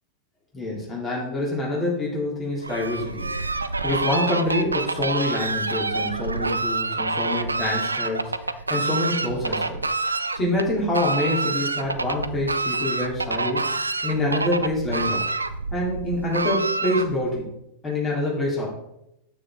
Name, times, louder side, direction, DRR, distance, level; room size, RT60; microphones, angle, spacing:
voice 1, 0.5-3.3 3.8-9.8 10.3-13.7 14.0-15.2 15.7-17.4 17.8-18.7, left 1 dB, 20° left, -3 dB, 3.4 m, -26 dB
Fowl, 2.6-17.4, right 3 dB, 80° right, 0.5 m, -27 dB
9.3 x 8.1 x 3.8 m, 0.82 s
figure-of-eight pair, 90°, 0 cm